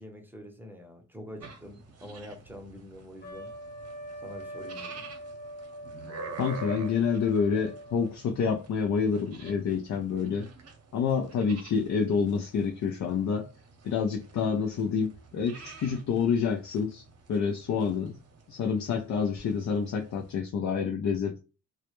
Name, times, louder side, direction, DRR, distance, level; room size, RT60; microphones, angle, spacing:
voice 1, 0.0-3.5 4.2-5.0, equal, 5° right, 0.7 m, -45 dB
sound 1, 1.4-20.4, right 4 dB, 55° right, 0.7 m, -48 dB
Trumpet, 3.2-8.2, equal, 35° left, 0.7 m, -43 dB
voice 2, 6.4-10.5 10.9-13.5 13.8-17.0 17.3-18.2 18.5-21.4, left 6 dB, 65° left, 0.4 m, -28 dB
2.1 x 2.1 x 2.9 m
cardioid pair, 75°, 30 cm